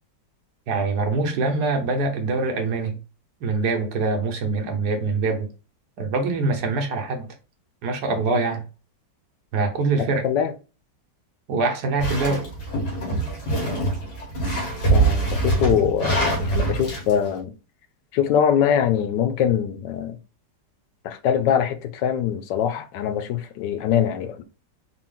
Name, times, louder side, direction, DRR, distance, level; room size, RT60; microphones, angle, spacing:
voice 1, 0.7-3.0 3.4-5.5 6.0-7.3 7.8-8.6 9.5-10.2 11.5-12.4, right 3 dB, 70° right, 1.3 m, -24 dB
sound 1, 12.0-17.1, right 2 dB, 65° left, 2.0 m, -23 dB
voice 2, 14.9-17.5 18.1-20.2 21.0-24.4, left 9 dB, 80° left, 1.3 m, -23 dB
4.1 x 2.3 x 3.7 m
omnidirectional pair, 1.9 m